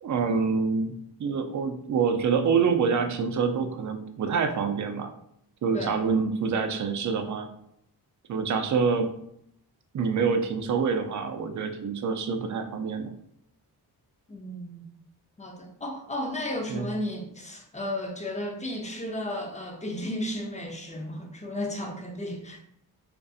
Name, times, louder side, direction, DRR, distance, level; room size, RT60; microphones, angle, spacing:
voice 1, 0.0-5.1 5.6-7.5 8.3-9.1 9.9-13.1 16.7-16.9, right 5 dB, 50° right, 7 dB, 0.4 m, -26 dB
voice 2, 14.3-14.9 15.4-22.6, left 1 dB, 20° left, 2 dB, 0.5 m, -34 dB
2.5 x 2.5 x 2.3 m, 0.72 s
cardioid pair, 75°, 39 cm